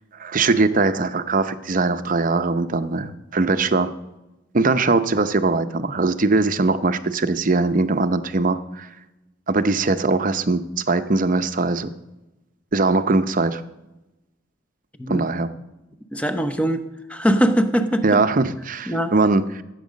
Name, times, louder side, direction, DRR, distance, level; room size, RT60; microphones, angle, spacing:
voice 1, 0.2-3.9 4.5-8.9 9.5-10.6 10.9-11.9 12.7-13.6 15.1-15.5 18.0-19.6, right 3 dB, 40° right, 11 dB, 0.7 m, -21 dB
voice 2, 16.1-16.8 17.1-18.2 18.9-19.1, equal, 5° left, 7 dB, 0.8 m, -21 dB
14.5 x 8.1 x 6.3 m, 0.99 s
head